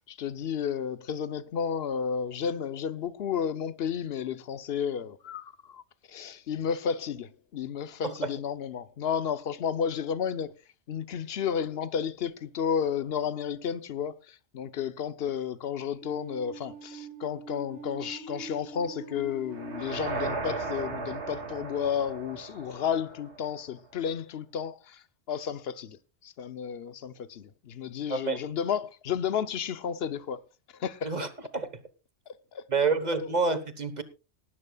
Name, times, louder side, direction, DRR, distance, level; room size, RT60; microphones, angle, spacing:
voice 1, 0.0-5.8 6.1-10.5 10.9-26.0 26.2-30.4 30.8-31.1 32.5-32.9, left 7 dB, 60° left, 1.0 m, -32 dB
sound 1, 16.0-22.9, right 4 dB, 60° right, 5.4 m, -45 dB
sound 2, 19.5-23.6, right 3 dB, 75° right, 1.9 m, -36 dB
voice 2, 28.1-28.4 31.0-31.7 32.7-34.0, right 4 dB, 40° right, 1.2 m, -28 dB
18.5 x 12.0 x 2.3 m
omnidirectional pair, 1.2 m